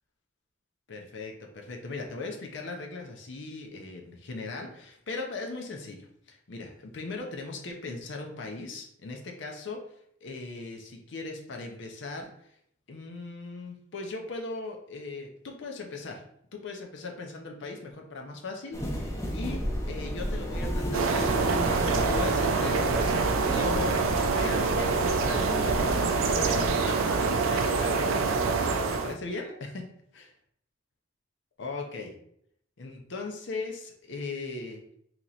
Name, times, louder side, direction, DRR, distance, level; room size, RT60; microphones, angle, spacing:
voice 1, 0.9-12.5 12.9-16.2 16.5-23.1 23.4-26.1 26.4-29.8 30.1-30.2 31.6-32.2 32.8-34.8, left 3 dB, 65° left, 2 dB, 0.6 m, -39 dB
sound 1, 18.7-26.7, equal, 15° left, 0.6 m, -33 dB
sound 2, 20.9-29.2, right 4 dB, 85° right, 0.4 m, -26 dB
2.9 x 2.9 x 3.9 m, 0.68 s
head